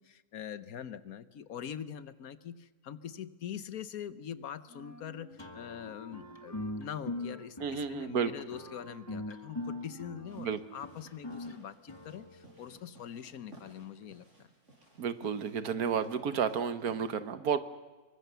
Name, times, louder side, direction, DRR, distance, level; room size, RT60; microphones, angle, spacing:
voice 1, 0.0-14.5, left 9 dB, 70° left, 14 dB, 1.4 m, -43 dB
Wind instrument woodwind instrument, 4.7-6.8 7.1-8.2 8.4-10.6, right 1 dB, 10° right, 1.2 m, -54 dB
sound 1, 5.4-12.8, left 2 dB, 20° left, 1.4 m, -42 dB
voice 2, 7.6-8.3 10.4-10.6 15.0-17.6, right 7 dB, 75° right, 12 dB, 1.6 m, -31 dB
sound 2, 10.3-17.0, right 1 dB, 50° right, 7.4 m, -58 dB
25.5 x 23.5 x 6.9 m, 1.3 s
omnidirectional pair, 1.6 m